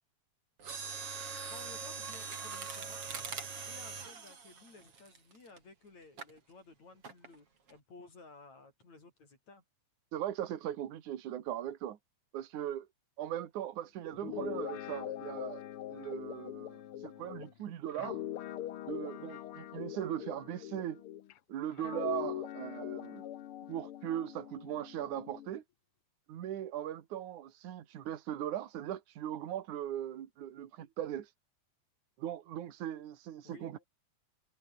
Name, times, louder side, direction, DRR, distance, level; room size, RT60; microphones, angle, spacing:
Mechanisms, 0.6-5.6 6.2-6.4 7.0-7.4 7.7-7.8, right 5 dB, 45° right, 4.4 m, -42 dB
voice 1, 1.5-3.1 3.7-9.6 33.4-33.8, left 3 dB, 55° left, 8.1 m, -56 dB
voice 2, 10.1-12.0 12.3-12.9 13.2-15.6 15.9-18.2 18.9-21.0 21.5-23.3 23.7-25.6 26.3-31.3 32.2-33.8, right 11 dB, 65° right, 3.1 m, -39 dB
Guitar, 14.1-21.3 21.8-25.5, left 12 dB, 80° left, 1.2 m, -42 dB
omnidirectional pair, 3.8 m